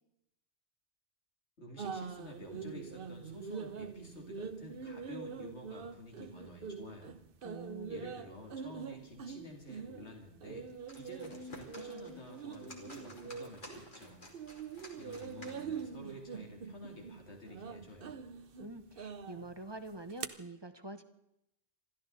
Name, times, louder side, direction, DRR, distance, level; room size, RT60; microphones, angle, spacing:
voice 1, 1.6-7.1 7.9-14.3 15.0-18.2, left 1 dB, 75° left, 1 dB, 3.1 m, -50 dB
sound 1, 1.8-14.0 14.3-20.3, right 5 dB, 55° right, 1.0 m, -44 dB
voice 2, 7.4-8.1 18.6-21.0, right 2 dB, 25° right, 9 dB, 1.0 m, -46 dB
sound 2, 10.7-16.0, left 1 dB, 45° left, 3.0 m, -53 dB
27.5 x 13.0 x 4.0 m, 0.84 s
omnidirectional pair, 1.2 m